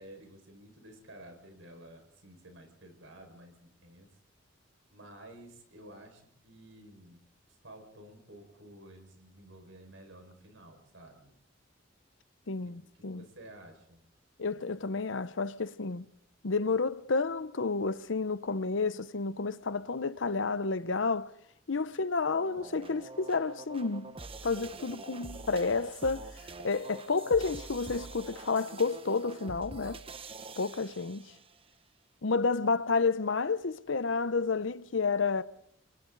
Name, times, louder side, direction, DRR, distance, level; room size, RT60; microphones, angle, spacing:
voice 1, 0.0-4.1 4.9-7.2 7.6-11.4 12.6-14.0, right 1 dB, 85° right, 5.6 m, -52 dB
voice 2, 12.5-13.2 14.4-16.0 16.4-21.3 21.7-24.1 24.4-26.3 26.6-30.0 30.6-31.3 32.2-35.4, left 4 dB, 75° left, 0.8 m, -30 dB
sound 1, 22.3-31.6, right 3 dB, 30° right, 1.0 m, -46 dB
30.0 x 24.0 x 4.0 m
head